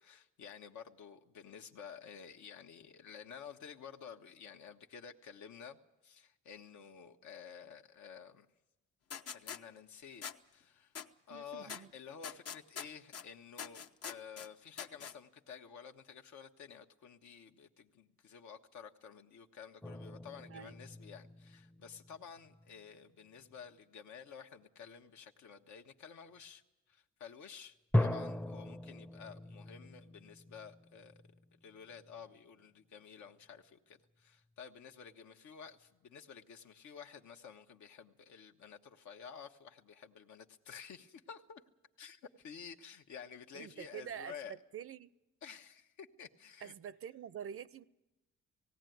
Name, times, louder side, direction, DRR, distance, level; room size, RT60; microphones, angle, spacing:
voice 1, 0.0-5.8 6.0-8.5 9.3-10.2 10.5-10.9 11.3-26.6 26.9-31.1 31.6-41.6 42.0-44.5 45.4-46.7, left 7 dB, 70° left, 1.2 m, -52 dB
sound 1, 9.1-9.6 10.2-10.3 10.9-11.1 11.7-11.8 12.2-13.2 13.6-14.5 14.8-15.1, left 7 dB, 50° left, 0.9 m, -43 dB
voice 2, 11.3-11.9 20.5-20.7 43.5-44.3 44.7-45.1 46.6-47.8, right 8 dB, 50° right, 0.6 m, -46 dB
sound 2, 19.8-22.8 23.3-23.7 27.9-32.3, left 1 dB, 5° left, 0.6 m, -39 dB
18.5 x 16.5 x 9.2 m
cardioid pair, 90°, 30 cm